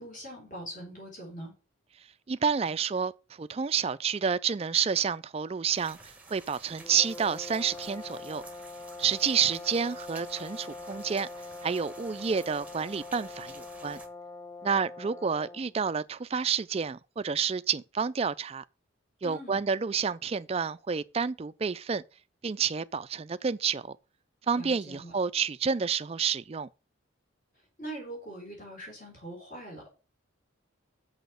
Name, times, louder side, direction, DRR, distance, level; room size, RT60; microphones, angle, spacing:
voice 1, 0.0-1.5 19.2-19.6 24.5-25.1 27.8-29.9, right 1 dB, 40° left, 3.8 m, -42 dB
voice 2, 2.3-3.1 3.4-8.4 9.0-11.3 11.6-14.0 14.6-18.6 19.2-22.0 22.4-24.0 24.5-26.7, right 6 dB, 30° right, 0.3 m, -29 dB
sound 1, 5.7-14.1, right 3 dB, 5° right, 1.1 m, -51 dB
sound 2, 6.8-15.7, left 3 dB, 15° left, 0.6 m, -43 dB
6.2 x 5.6 x 6.6 m
head